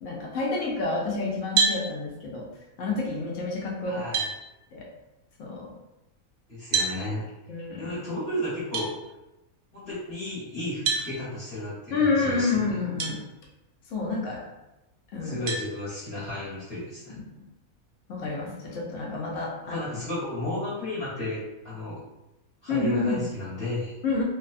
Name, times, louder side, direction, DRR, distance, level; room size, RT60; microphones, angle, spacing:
voice 1, 0.0-2.5 2.8-4.1 4.7-4.9 5.4-5.7 7.5-7.9 11.9-13.2 13.9-14.4 15.1-15.4 17.1-17.2 18.1-19.8 22.7-23.2 24.0-24.2, left 3 dB, 65° left, -3 dB, 0.9 m, -29 dB
sound 1, 1.6-1.8 3.5-3.6 4.1-4.3 6.7-7.0 8.7-8.9 10.9-11.1 13.0-13.1 13.8-13.9 15.5-15.7, right 4 dB, 70° right, 0.9 m, -25 dB
voice 2, 3.8-4.3 6.5-7.2 7.8-8.9 9.7-12.8 15.2-17.1 19.6-22.0 22.6-23.9, left 1 dB, 45° left, -11 dB, 1.1 m, -33 dB
2.6 x 2.2 x 2.4 m, 0.97 s
omnidirectional pair, 1.6 m